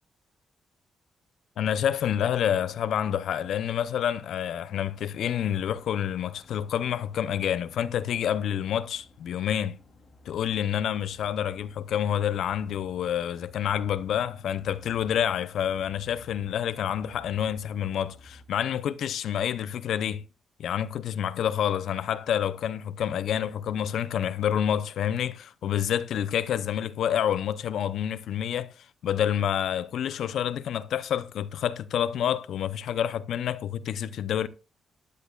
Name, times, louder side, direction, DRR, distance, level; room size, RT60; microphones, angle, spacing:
voice 1, 1.6-9.8 10.3-20.2 20.6-34.5, left 9 dB, 75° left, 0.6 m, -28 dB
sound 1, 5.2-18.5, left 2 dB, 50° left, 2.9 m, -55 dB
15.0 x 10.5 x 2.4 m
cardioid pair, 125°, 0 cm